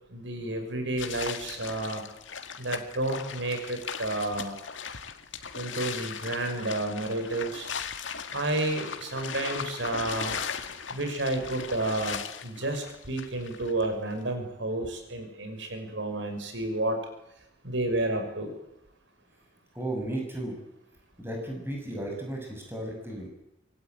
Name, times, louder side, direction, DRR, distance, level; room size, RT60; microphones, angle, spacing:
voice 1, 0.1-2.0 2.6-4.5 5.5-7.7 8.3-10.4 10.9-17.0 17.6-18.5, right 2 dB, 75° right, 6 dB, 5.9 m, -31 dB
sound 1, 1.0-13.9, left 6 dB, 85° left, 2.0 m, -38 dB
voice 2, 19.7-20.6 21.2-23.3, right 1 dB, 10° right, 2 dB, 6.8 m, -34 dB
25.5 x 22.5 x 9.2 m, 0.84 s
head